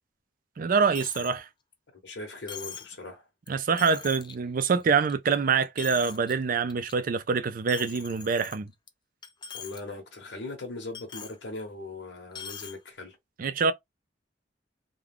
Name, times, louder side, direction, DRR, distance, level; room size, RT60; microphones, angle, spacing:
voice 1, 0.6-1.5 3.5-8.7 13.4-13.7, right 5 dB, 50° right, 0.4 m, -25 dB
Coin (dropping), 0.9-1.4 1.7-1.8 2.5-2.9 3.5-3.6 3.8-4.3 4.8-5.3 5.6-6.3 6.7-6.9 7.7-8.9 9.2-9.8 10.1-10.2 10.9-11.4 12.3-12.8, left 7 dB, 25° left, 0.4 m, -42 dB
voice 2, 2.0-3.2 9.5-13.2, left 2 dB, 65° left, 0.9 m, -39 dB
2.4 x 2.2 x 3.3 m
head